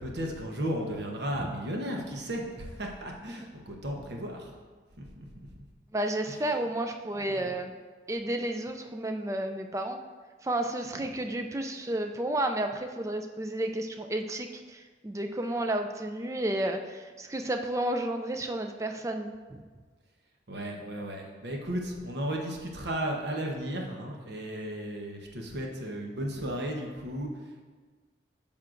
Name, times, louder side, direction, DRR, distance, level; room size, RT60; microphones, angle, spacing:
voice 1, 0.0-4.5 5.0-5.6 6.3-6.4 7.1-7.6 10.9-11.1 20.5-27.3, equal, 70° right, 1 dB, 1.0 m, -35 dB
voice 2, 5.9-7.7 8.1-10.0 10.4-19.6, right 1 dB, 15° right, 5 dB, 0.3 m, -32 dB
9.2 x 5.6 x 2.5 m, 1.5 s
head